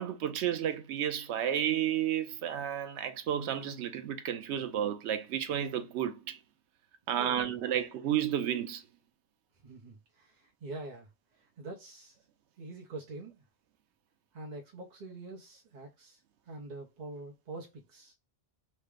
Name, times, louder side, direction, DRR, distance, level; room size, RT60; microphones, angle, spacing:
voice 1, 0.0-6.4 7.1-8.8, right 10 dB, 85° right, 0.9 m, -32 dB
voice 2, 7.1-7.6 9.6-11.1 11.6-12.2 12.6-13.4 14.3-16.2 16.5-18.1, right 2 dB, 50° right, 0.7 m, -45 dB
3.1 x 2.0 x 3.4 m
omnidirectional pair, 1.1 m